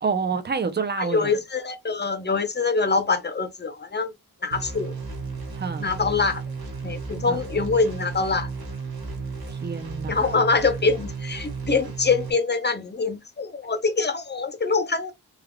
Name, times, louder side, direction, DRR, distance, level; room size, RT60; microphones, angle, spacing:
voice 1, 0.0-1.3 5.6-5.9 7.3-7.4 9.5-10.3, right 5 dB, 25° right, 0.6 m, -28 dB
voice 2, 1.0-4.1 4.4-4.9 5.8-6.4 6.8-8.5 10.1-15.1, left 4 dB, 25° left, 0.7 m, -24 dB
sound 1, 4.5-12.3, right 4 dB, 65° right, 1.3 m, -34 dB
3.5 x 3.5 x 2.2 m
wide cardioid pair, 165°, 39 cm